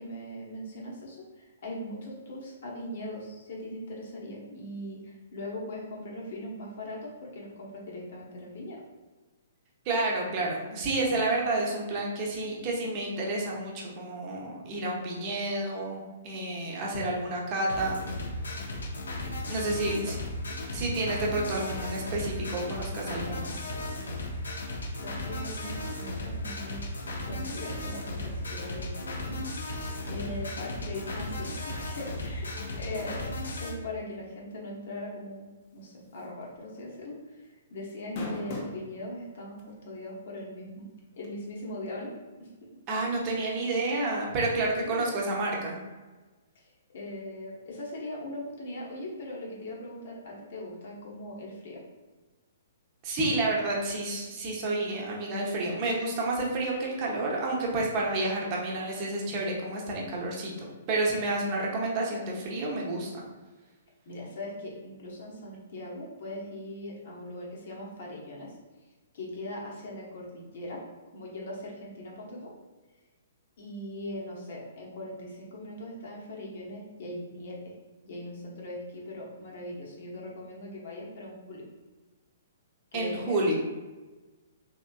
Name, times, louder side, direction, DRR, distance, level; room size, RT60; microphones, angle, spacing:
voice 1, 0.0-8.8 19.8-20.0 25.0-29.3 30.0-33.2 33.6-35.5 35.7-40.9 41.2-42.1 42.4-42.5 44.8-45.1 46.5-51.8 64.1-68.6 69.1-70.8 71.1-72.5 73.6-77.7 78.0-81.7 82.9-83.4, left 1 dB, 55° left, -3 dB, 0.9 m, -40 dB
voice 2, 9.8-18.0 19.5-20.2 20.7-23.5 30.3-30.4 42.9-45.8 53.0-63.2 82.9-83.5, right 2 dB, 35° right, -3 dB, 0.8 m, -30 dB
sound 1, 17.7-33.7, left 1 dB, 80° left, 0.7 m, -35 dB
sound 2, 36.2-36.4 36.8-36.9 37.9-38.8 39.6-39.7 41.2-41.3, left 2 dB, 40° left, 0.7 m, -34 dB
3.5 x 2.9 x 2.3 m, 1.2 s
figure-of-eight pair, 120°, 0 cm